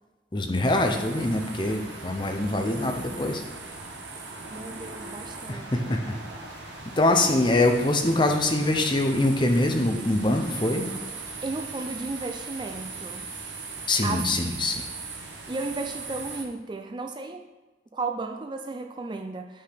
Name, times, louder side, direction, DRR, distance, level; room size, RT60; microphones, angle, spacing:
voice 1, 0.3-3.4 5.5-6.2 7.0-10.9 13.9-14.8, left 2 dB, 25° left, 3 dB, 0.8 m, -24 dB
sound 1, 0.6-16.4, right 3 dB, 90° right, 1.3 m, -39 dB
voice 2, 4.5-6.0 11.4-13.3 14.0-14.3 15.5-17.4 17.9-19.6, right 3 dB, 25° right, 5 dB, 0.4 m, -34 dB
8.1 x 5.6 x 5.1 m, 1.2 s
head